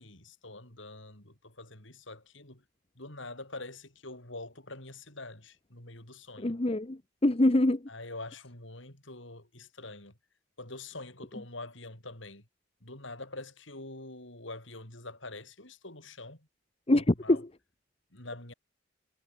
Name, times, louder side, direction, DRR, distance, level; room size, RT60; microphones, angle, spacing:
voice 1, 0.0-2.6 2.9-6.6 7.9-10.2 10.6-12.5 12.8-16.5 16.9-17.4 18.1-18.5, left 2 dB, 65° left, 6.7 m, -45 dB
voice 2, 6.4-7.8 16.9-17.4, left 1 dB, 30° left, 0.9 m, -25 dB
head